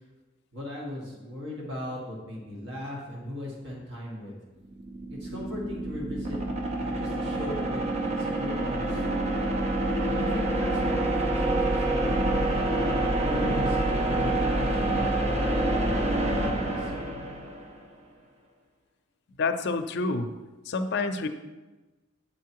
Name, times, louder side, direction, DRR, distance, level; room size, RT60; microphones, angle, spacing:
voice 1, 0.5-4.3 5.1-6.4 6.8-9.2 10.1-12.4 13.2-16.9, left 1 dB, 60° right, -3 dB, 1.7 m, -38 dB
sound 1, 4.6-17.8, right 1 dB, 30° right, 0.8 m, -27 dB
voice 2, 19.4-20.3 20.7-21.3, left 3 dB, 55° left, 8 dB, 0.5 m, -28 dB
8.6 x 4.6 x 4.6 m, 1.2 s
head